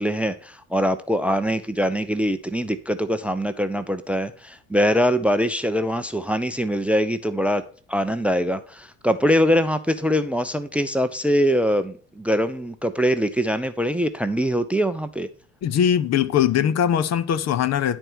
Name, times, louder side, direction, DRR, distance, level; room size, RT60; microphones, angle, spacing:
voice 1, 0.0-15.3, equal, 5° right, 0.6 m, -23 dB
voice 2, 15.6-18.0, left 9 dB, 40° left, 0.7 m, -21 dB
10.5 x 4.4 x 6.0 m
figure-of-eight pair, 50°, 39 cm